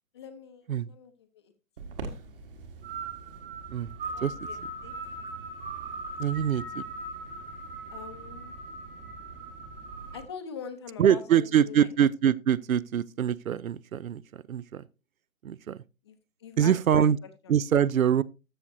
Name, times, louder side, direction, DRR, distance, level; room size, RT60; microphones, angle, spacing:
voice 1, 0.1-1.5 4.1-4.9 7.9-8.5 10.1-11.9 16.0-17.1 17.4-17.5, left 7 dB, 20° left, 0.7 m, -44 dB
sound 1, 1.8-10.2, right 2 dB, 40° right, 1.6 m, -39 dB
voice 2, 6.2-6.8 11.0-14.8 15.4-15.8 16.6-17.2 17.5-18.2, right 9 dB, 75° right, 0.6 m, -24 dB
13.5 x 6.5 x 2.7 m
figure-of-eight pair, 145°, 41 cm